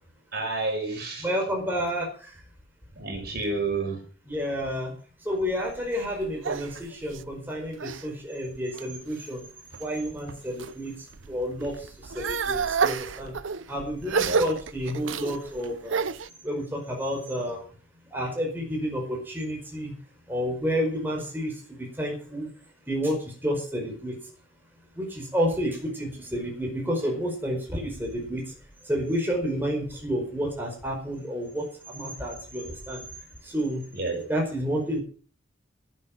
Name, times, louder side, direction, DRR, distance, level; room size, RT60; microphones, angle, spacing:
voice 1, 0.3-1.3 3.0-4.0 14.2-14.5 33.9-34.2, right 3 dB, 55° right, 3 dB, 5.7 m, -30 dB
voice 2, 1.2-2.4 4.3-4.9 5.2-9.4 9.8-13.3 13.7-16.1 16.4-17.7 18.1-19.9 20.3-22.5 22.9-24.2 25.0-28.5 28.8-33.0 33.4-33.8 34.3-35.0, equal, 10° right, 0 dB, 4.9 m, -30 dB
sound 1, 5.5-8.1 8.5-9.1 9.7-10.7 11.1-16.3, right 5 dB, 85° right, 0.7 m, -30 dB
13.5 x 11.5 x 5.9 m, 0.40 s
head